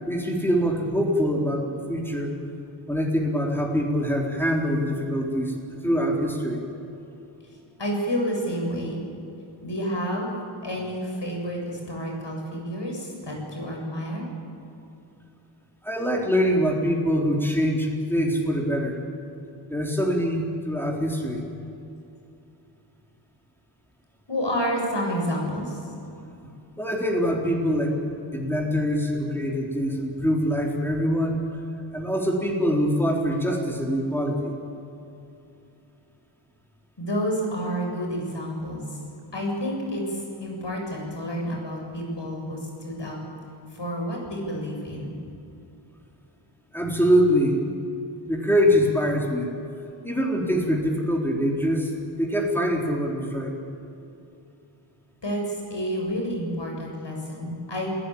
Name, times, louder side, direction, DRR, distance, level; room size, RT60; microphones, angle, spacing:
voice 1, 0.0-2.4 2.9-5.5 5.8-6.6 15.8-19.0 19.7-21.5 26.4-26.5 26.8-28.0 28.3-31.4 31.9-34.5 46.7-47.6 48.2-49.5 50.0-51.9 52.2-53.5, equal, 5° left, -2 dB, 4.1 m, -24 dB
voice 2, 7.8-9.0 9.6-14.3 24.3-25.8 37.0-39.0 39.3-43.2 43.7-45.2 55.2-57.9, equal, 60° left, 0 dB, 7.4 m, -29 dB
28.5 x 16.5 x 8.8 m, 2.8 s
wide cardioid pair, 60°, 48 cm